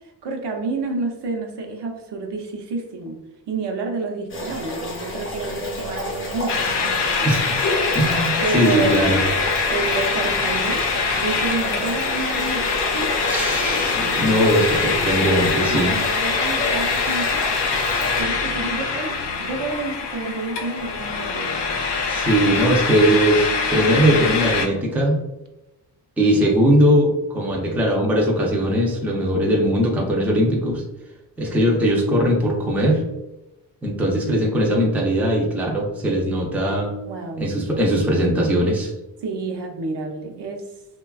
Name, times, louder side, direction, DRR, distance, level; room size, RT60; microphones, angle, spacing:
voice 1, 0.0-3.2 3.5-7.4 8.4-9.1 9.7-10.9 11.2-12.8 14.4-14.6 15.4-21.5 37.0-37.5 39.2-40.7, right 3 dB, 80° right, 2 dB, 0.7 m, -29 dB
sound 1, 4.3-18.2, left 1 dB, 30° left, 0.6 m, -29 dB
sound 2, 6.5-24.7, left 5 dB, 80° left, 0.6 m, -24 dB
voice 2, 7.9-9.2 13.2-16.0 22.1-25.2 26.2-30.8 31.4-33.0 33.8-36.9 37.4-38.9, equal, 5° right, -2 dB, 0.3 m, -20 dB
3.3 x 2.2 x 2.3 m, 0.99 s
wide cardioid pair, 165°, 41 cm